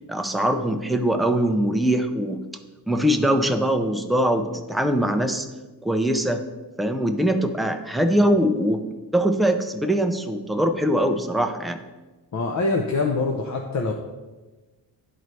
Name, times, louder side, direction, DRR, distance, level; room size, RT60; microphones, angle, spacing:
voice 1, 0.1-2.4 2.9-5.5 5.8-6.4 6.8-8.8 9.1-11.8, equal, ahead, 6 dB, 0.3 m, -22 dB
voice 2, 12.3-13.9, left 3 dB, 40° left, 2 dB, 0.6 m, -24 dB
10.5 x 4.0 x 3.1 m, 1.2 s
wide cardioid pair, 110°, 42 cm